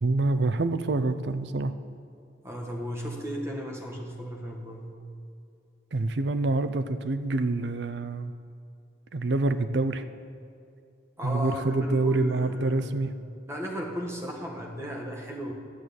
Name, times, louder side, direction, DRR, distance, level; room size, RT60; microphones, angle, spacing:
voice 1, 0.0-1.7 5.9-8.3 9.1-10.0 11.2-13.2, right 2 dB, 65° right, 11 dB, 0.6 m, -26 dB
voice 2, 2.4-4.9 11.2-12.9 13.5-15.5, equal, 15° right, 0 dB, 1.4 m, -35 dB
11.5 x 6.2 x 8.4 m, 2.5 s
head